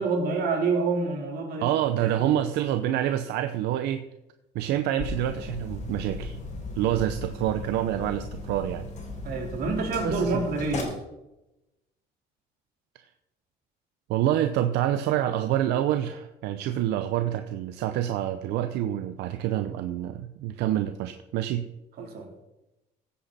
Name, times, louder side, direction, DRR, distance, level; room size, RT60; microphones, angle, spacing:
voice 1, 0.0-1.7 2.0-2.1 9.2-11.0 22.0-22.3, right 4 dB, 65° right, 0 dB, 4.0 m, -27 dB
voice 2, 1.6-4.0 4.5-6.4 6.8-8.8 10.0-10.4 14.1-21.7, right 12 dB, 90° right, 8 dB, 0.7 m, -27 dB
sound 1, 5.0-10.8, left 3 dB, 45° left, 4.1 m, -37 dB
15.5 x 8.5 x 4.2 m, 0.92 s
cardioid pair, 110°, 17 cm